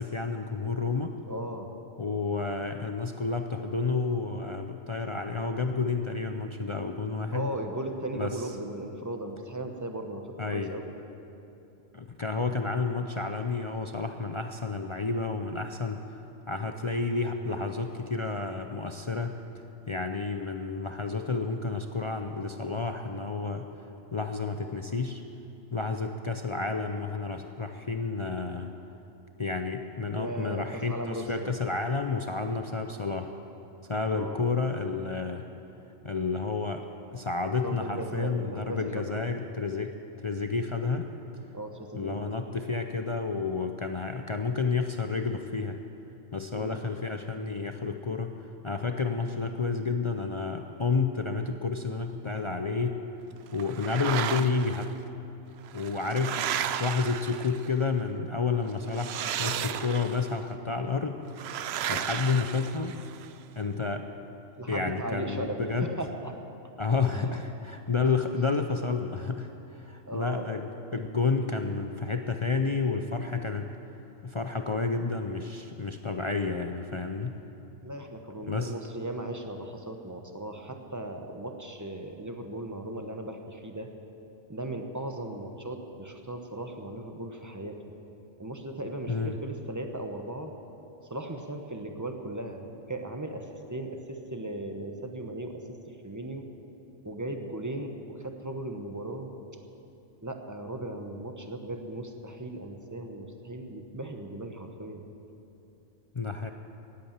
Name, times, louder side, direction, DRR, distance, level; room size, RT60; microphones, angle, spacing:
voice 1, 0.0-1.2 2.0-7.5 8.1-8.5 10.4-10.7 11.9-16.0 16.5-19.3 19.9-23.7 24.1-25.2 25.7-28.7 29.4-33.3 33.9-35.4 36.0-36.8 37.1-39.9 40.2-41.1 41.9-45.8 46.3-48.3 48.6-53.0 53.5-54.9 55.7-61.2 61.9-63.0 63.6-64.1 64.7-65.9 66.8-73.7 74.2-77.4 78.5-78.7 89.1-89.4 106.1-106.5, left 4 dB, 55° left, 5 dB, 0.3 m, -30 dB
voice 2, 1.3-1.7 7.3-10.9 30.1-31.5 34.1-34.4 37.6-39.2 41.5-42.3 46.5-46.8 64.6-66.3 67.1-67.4 70.0-70.5 77.8-83.9 84.5-87.8 88.4-90.5 91.1-96.5 97.0-99.3 100.2-105.1, right 1 dB, 15° right, 4 dB, 0.8 m, -37 dB
sound 1, 53.6-54.8 55.6-57.8 58.9-60.3 61.4-63.3, right 9 dB, 65° right, 0.7 m, -33 dB
18.0 x 8.5 x 7.3 m, 2.9 s
omnidirectional pair, 1.4 m